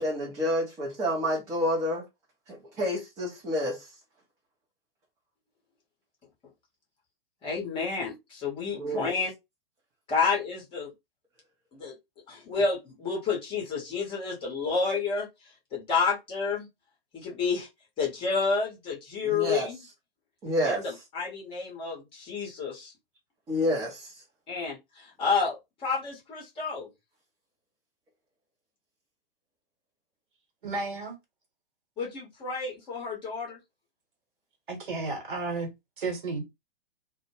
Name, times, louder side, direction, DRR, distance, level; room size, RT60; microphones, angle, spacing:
voice 1, 0.0-2.0 2.5-3.8 8.7-9.1 19.2-19.7 20.4-20.8 23.5-24.1, equal, 10° right, 0.5 m, -29 dB
voice 2, 7.4-9.3 10.1-10.9 11.7-11.9 12.3-15.3 15.7-16.7 17.1-17.7 18.0-19.9 20.6-22.9 24.5-26.9 32.0-33.6, left 5 dB, 15° left, 0.8 m, -30 dB
voice 3, 30.6-31.2 34.7-35.7 36.0-36.4, right 3 dB, 60° right, 1.1 m, -32 dB
2.1 x 2.1 x 3.1 m
figure-of-eight pair, 110°, 29 cm